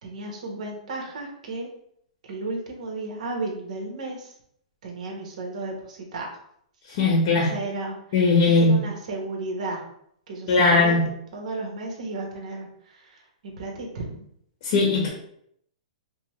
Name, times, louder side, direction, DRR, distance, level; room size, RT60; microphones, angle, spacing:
voice 1, 0.0-1.7 2.2-4.3 4.8-6.3 7.4-8.0 8.6-9.8 10.3-11.0 11.3-14.2, right 2 dB, 65° right, 1 dB, 1.1 m, -33 dB
voice 2, 6.9-7.5 8.1-8.7 10.5-11.0 14.6-15.1, left 3 dB, 45° left, -2 dB, 1.0 m, -19 dB
5.1 x 2.1 x 3.0 m, 0.69 s
hypercardioid pair, 155°, 4 cm